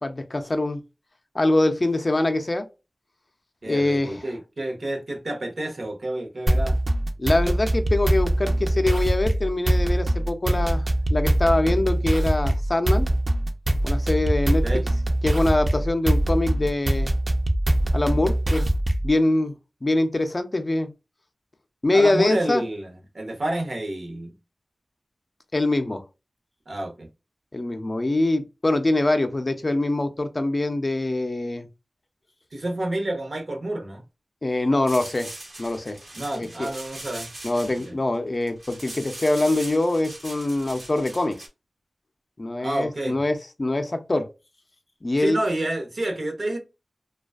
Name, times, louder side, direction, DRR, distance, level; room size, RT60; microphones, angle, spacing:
voice 1, 0.0-0.8 1.3-2.7 3.7-4.2 7.2-10.8 11.1-13.1 13.8-14.6 15.2-17.1 17.9-18.8 19.0-19.5 19.8-20.9 21.8-22.6 25.5-26.0 27.5-31.7 34.4-35.3 35.6-36.0 36.4-36.7 37.4-41.4 42.4-44.3 45.0-45.4, left 2 dB, 40° left, 0.4 m, -23 dB
voice 2, 3.6-6.8 14.5-14.9 21.9-24.3 26.7-27.1 32.5-34.0 36.1-37.3 37.9-38.0 42.6-43.2 45.2-46.6, right 1 dB, 65° right, 0.8 m, -29 dB
sound 1, 6.5-19.1, right 1 dB, 45° right, 0.5 m, -23 dB
sound 2, 34.9-41.5, right 2 dB, 85° right, 1.1 m, -40 dB
2.5 x 2.2 x 2.3 m
wide cardioid pair, 65°, 0 cm